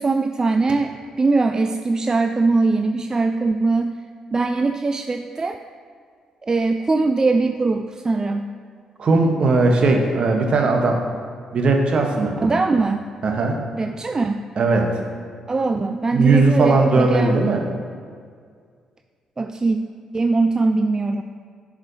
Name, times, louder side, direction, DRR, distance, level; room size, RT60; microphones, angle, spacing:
voice 1, 0.0-4.0 4.3-5.6 6.4-8.5 12.4-13.1 13.8-14.4 15.5-17.3 19.4-19.8 20.1-21.2, right 3 dB, 30° right, 7 dB, 0.3 m, -21 dB
voice 2, 9.0-11.0 11.5-12.5 13.2-13.6 14.6-14.9 16.1-17.6, right 3 dB, 55° right, 3 dB, 1.0 m, -18 dB
11.0 x 4.9 x 2.7 m, 2.1 s
hypercardioid pair, 45°, 2 cm